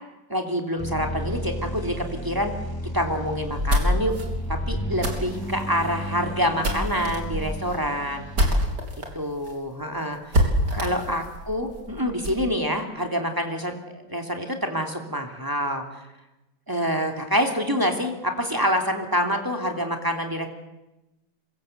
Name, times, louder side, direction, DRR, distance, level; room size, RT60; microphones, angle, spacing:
voice 1, 0.3-2.5 2.9-4.1 4.5-8.3 9.1-10.4 10.7-16.0 16.7-20.5, equal, 10° right, 3 dB, 3.0 m, -26 dB
sound 1, 0.8-8.7, equal, 10° left, 5.3 m, -34 dB
sound 2, 3.4-9.1 9.4-9.5 9.8-9.9 10.3-12.4, equal, 65° right, 4.8 m, -26 dB
26.5 x 22.0 x 8.1 m, 0.99 s
omnidirectional pair, 2.0 m